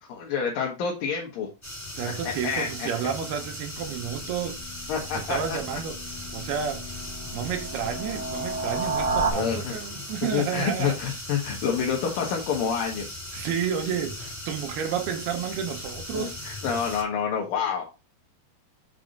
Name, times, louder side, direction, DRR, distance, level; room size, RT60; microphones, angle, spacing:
voice 1, 0.1-1.5 2.2-2.9 4.9-5.6 9.3-9.7 10.3-13.1 16.1-17.9, left 7 dB, 65° left, 2.9 m, -28 dB
sound 1, 1.6-17.0, left 1 dB, 15° left, 0.5 m, -38 dB
voice 2, 2.0-4.6 5.3-6.0 6.3-6.9 7.3-11.1 13.3-16.4, right 8 dB, 75° right, 2.7 m, -31 dB
sound 2, 3.7-9.3, right 3 dB, 15° right, 1.4 m, -33 dB
7.0 x 4.8 x 5.2 m
omnidirectional pair, 4.8 m